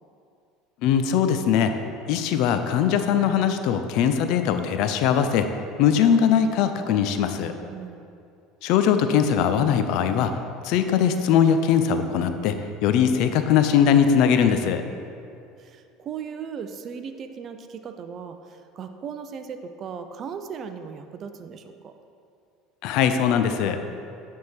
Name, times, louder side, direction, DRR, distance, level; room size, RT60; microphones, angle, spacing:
voice 1, 0.8-1.7 2.1-5.5 5.8-7.5 8.6-10.4 10.6-12.6 12.8-14.8 22.8-23.8, left 8 dB, 65° left, 8 dB, 0.4 m, -21 dB
voice 2, 7.6-8.1 15.6-21.9, right 6 dB, 45° right, 8 dB, 0.5 m, -37 dB
9.3 x 3.6 x 4.5 m, 2.4 s
supercardioid pair, 90°, 0 cm